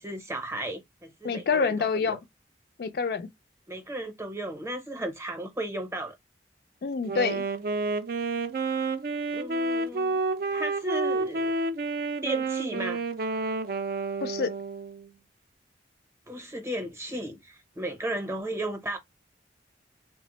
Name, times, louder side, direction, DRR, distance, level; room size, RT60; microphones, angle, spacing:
voice 1, 0.0-2.2 3.7-6.1 9.3-10.2 10.5-11.5 12.2-13.4 16.3-19.0, right 1 dB, 15° right, 0.7 m, -35 dB
voice 2, 1.2-2.2 2.8-3.3 6.8-7.4 14.2-14.5, left 5 dB, 55° left, 0.3 m, -27 dB
Wind instrument woodwind instrument, 7.1-15.1, right 3 dB, 50° right, 0.4 m, -30 dB
3.2 x 2.0 x 2.9 m
head